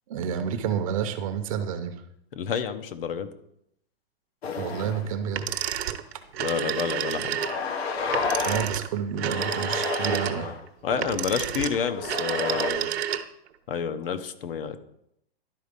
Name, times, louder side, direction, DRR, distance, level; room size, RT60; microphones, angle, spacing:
voice 1, 0.1-2.0 4.6-5.5 8.4-10.5, right 8 dB, 35° right, 8 dB, 0.7 m, -29 dB
voice 2, 2.3-3.3 6.4-7.4 10.8-12.9 13.7-14.8, left 7 dB, 60° left, 10 dB, 0.9 m, -29 dB
sound 1, 4.4-5.1 5.6-5.7 6.7-6.9 7.3-8.8 9.2-10.6 11.4-12.7, left 5 dB, 80° left, 1.2 m, -31 dB
sound 2, 5.3-13.5, right 10 dB, 80° right, 0.9 m, -30 dB
11.5 x 4.1 x 5.2 m, 0.77 s
hypercardioid pair, 165°, 31 cm